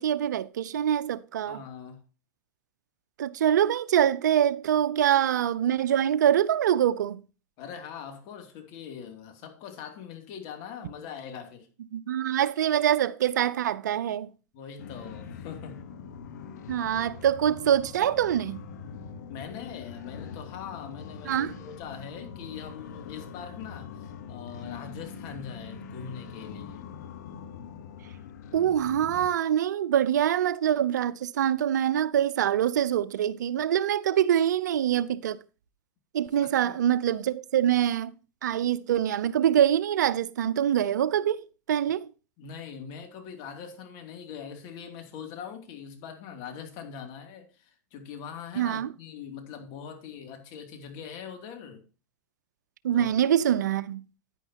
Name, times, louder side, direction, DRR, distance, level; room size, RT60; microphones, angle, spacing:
voice 1, 0.0-1.6 3.2-7.2 11.9-14.3 16.7-18.6 21.3-21.5 28.5-35.4 36.1-38.1 38.4-42.1 48.6-48.9 52.8-54.0, right 10 dB, 85° right, 0.6 m, -25 dB
voice 2, 1.5-2.0 7.6-11.7 14.5-15.8 19.3-26.9 36.6-36.8 42.4-51.8 52.9-53.1, left 7 dB, 50° left, 2.7 m, -42 dB
sound 1, 14.8-29.3, left 6 dB, 75° left, 1.3 m, -43 dB
10.0 x 9.8 x 2.9 m
hypercardioid pair, 110°, 9 cm